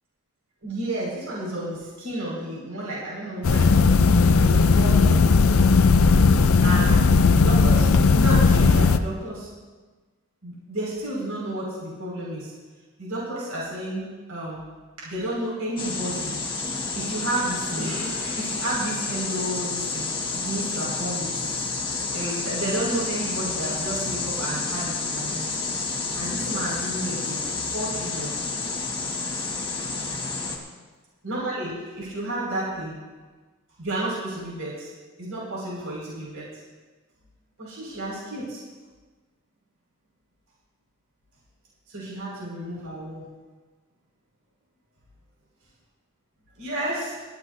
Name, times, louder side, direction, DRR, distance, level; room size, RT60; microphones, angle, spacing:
voice 1, 0.6-5.3 6.6-9.5 10.4-12.5 13.0-14.6 15.0-16.3 16.9-20.1 20.3-21.7 22.1-25.5 26.2-27.4 27.7-28.3 31.2-32.9 33.8-34.9 35.2-36.5 37.6-38.6 41.9-43.2 46.6-47.2, right 1 dB, 70° right, -6 dB, 5.6 m, -31 dB
sound 1, 3.4-9.0, left 4 dB, 70° left, 0.6 m, -17 dB
sound 2, 15.8-30.6, left 4 dB, 20° left, 1.6 m, -30 dB
21.0 x 14.5 x 2.7 m, 1.3 s
head